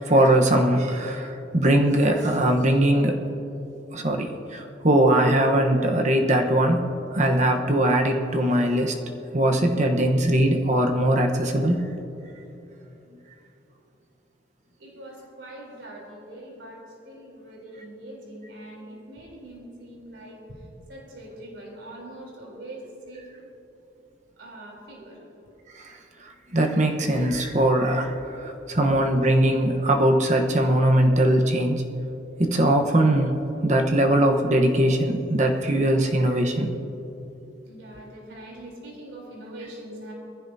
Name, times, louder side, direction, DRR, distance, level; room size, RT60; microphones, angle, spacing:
voice 1, 0.1-3.2 3.9-9.0 9.3-11.8 25.7-26.0 26.2-31.8 32.4-33.4 33.6-36.7, right 1 dB, 40° right, 3 dB, 1.1 m, -21 dB
voice 2, 14.8-23.3 24.4-25.3 37.7-40.1, right 1 dB, 85° right, -2 dB, 3.7 m, -42 dB
22.0 x 15.0 x 2.8 m, 3.0 s
head